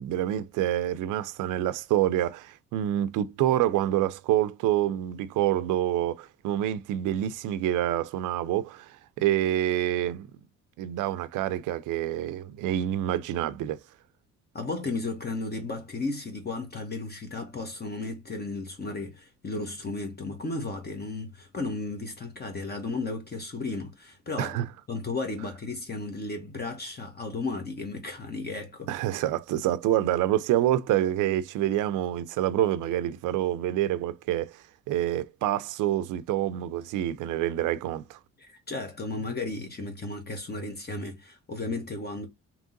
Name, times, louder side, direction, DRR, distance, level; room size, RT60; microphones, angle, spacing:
voice 1, 0.0-10.3 10.8-13.8 24.4-24.6 28.9-38.2, right 12 dB, 85° right, 0.5 m, -27 dB
voice 2, 14.5-24.6 24.9-28.9 38.4-42.3, left 3 dB, 30° left, 1.1 m, -34 dB
3.7 x 3.0 x 3.8 m
cardioid pair, 90°, 30 cm